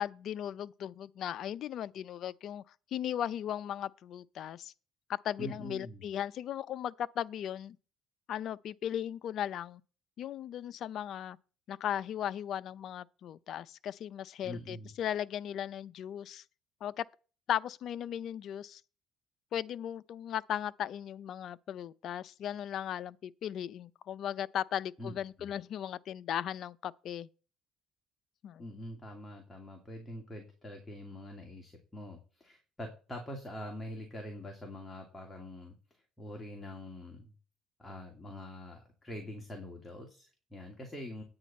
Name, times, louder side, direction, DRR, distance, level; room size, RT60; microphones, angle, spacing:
voice 1, 0.0-2.6 2.9-4.7 5.1-7.8 8.3-9.8 10.2-11.4 11.7-16.4 16.8-17.0 17.5-18.8 19.5-27.3 28.4-28.6, left 10 dB, 60° left, 0.5 m, -37 dB
voice 2, 5.4-6.1 14.4-14.9 25.0-25.2 28.6-37.3 37.8-41.2, left 1 dB, 15° left, 2.6 m, -44 dB
9.8 x 9.2 x 4.3 m
cardioid pair, 100°, 0 cm